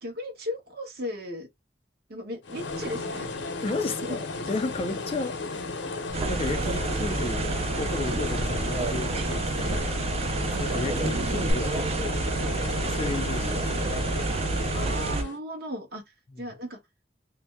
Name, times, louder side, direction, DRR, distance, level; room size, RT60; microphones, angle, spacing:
voice 1, 0.0-1.5 2.1-3.3 3.6-4.2 14.7-16.0 16.4-16.8, left 1 dB, 60° right, 1.1 m, -36 dB
sound 1, 2.4-15.4, left 3 dB, 80° left, 0.6 m, -34 dB
voice 2, 3.6-5.8 6.3-7.5 7.7-10.0 10.6-12.3 12.9-13.9 16.3-16.4, left 3 dB, 30° left, 0.4 m, -33 dB
sound 2, 6.1-15.2, right 3 dB, 35° right, 0.3 m, -29 dB
sound 3, 6.8-11.5, right 1 dB, 85° right, 0.8 m, -38 dB
2.6 x 2.0 x 3.3 m
head